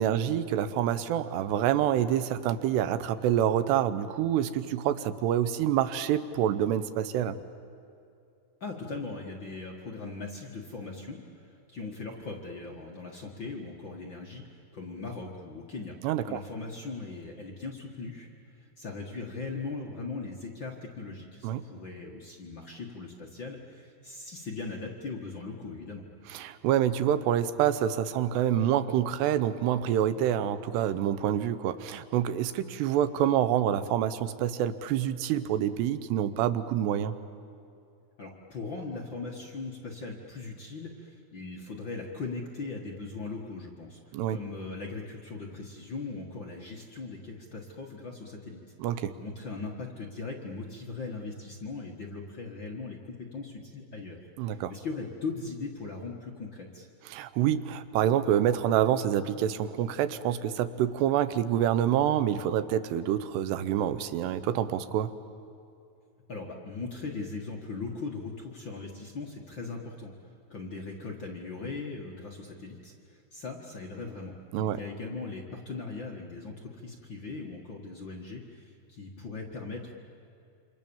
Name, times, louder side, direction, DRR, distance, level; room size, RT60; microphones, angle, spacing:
voice 1, 0.0-7.4 16.0-16.4 21.4-21.6 26.3-37.1 44.1-44.4 48.8-49.1 54.4-54.7 57.1-65.1 74.5-74.8, right 10 dB, 90° right, 12 dB, 3.1 m, -27 dB
voice 2, 8.6-16.0 16.3-26.0 38.2-48.6 49.2-56.9 66.3-79.9, left 3 dB, 45° left, -1 dB, 1.5 m, -39 dB
28.0 x 26.0 x 7.2 m, 2.6 s
omnidirectional pair, 4.7 m